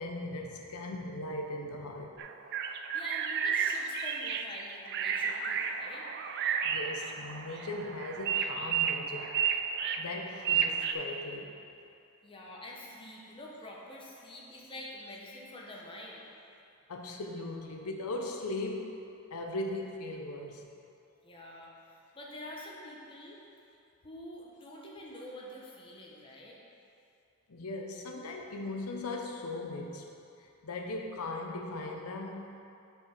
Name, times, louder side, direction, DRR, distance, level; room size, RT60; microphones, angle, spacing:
voice 1, 0.0-2.1 6.6-9.4 10.0-11.5 16.9-19.0 19.3-20.7 27.5-30.1 30.6-32.6, left 2 dB, 85° left, 2 dB, 0.7 m, -38 dB
sound 1, 2.2-10.9, right 7 dB, 50° right, 0.3 m, -32 dB
voice 2, 2.9-6.1 12.2-16.2 21.2-23.4 24.0-26.6, left 1 dB, 25° left, -3 dB, 0.9 m, -46 dB
6.2 x 4.6 x 4.9 m, 2.7 s
head